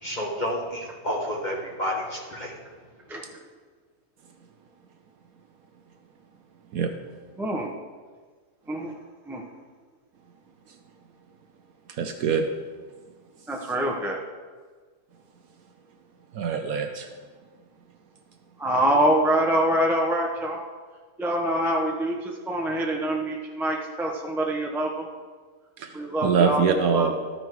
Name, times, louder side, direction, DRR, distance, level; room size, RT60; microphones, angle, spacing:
voice 1, 0.0-2.5, left 1 dB, 30° left, -1 dB, 1.0 m, -30 dB
voice 2, 7.4-7.7 8.7-8.9 9.2-9.4 13.5-14.2 18.6-20.6 21.2-25.1 25.9-27.1, right 1 dB, ahead, -1 dB, 0.5 m, -25 dB
voice 3, 11.9-12.5 16.3-17.1 25.8-26.0 26.2-27.1, right 6 dB, 65° right, 6 dB, 1.0 m, -24 dB
13.0 x 5.3 x 4.6 m, 1.5 s
omnidirectional pair, 1.8 m